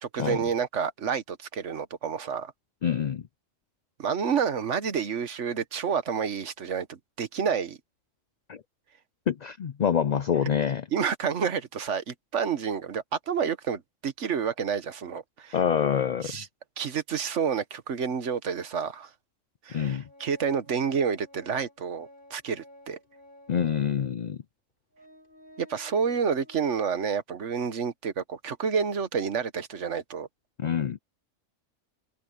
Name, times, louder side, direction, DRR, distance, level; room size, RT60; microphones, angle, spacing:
voice 1, 0.0-2.5 4.0-7.8 10.9-15.6 16.2-16.5 16.8-19.1 19.6-23.0 25.6-30.3, right 6 dB, 65° right, 1.4 m, -29 dB
voice 2, 2.8-3.2 8.5-8.6 9.3-10.8 15.5-16.4 19.7-20.0 23.5-24.4 30.6-31.0, left 8 dB, 60° left, 0.4 m, -26 dB
Organ, 19.8-23.7 24.4-24.5 24.9-27.1, left 1 dB, 40° left, 5.6 m, -53 dB
open air
omnidirectional pair, 1.3 m